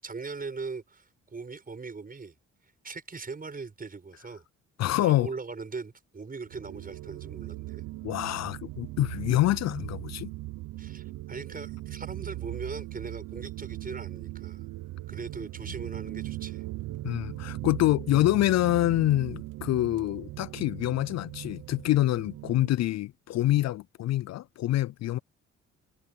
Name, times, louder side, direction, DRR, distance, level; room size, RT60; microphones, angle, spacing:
voice 1, 0.0-2.3 2.8-4.4 5.0-7.8 10.8-14.6 15.1-16.6, right 4 dB, 30° right, 5.9 m, -40 dB
voice 2, 4.8-5.3 8.0-10.3 17.0-25.2, left 15 dB, 60° left, 0.4 m, -26 dB
sound 1, 6.5-22.7, right 17 dB, 80° right, 0.9 m, -39 dB
cardioid pair, 90°, 30 cm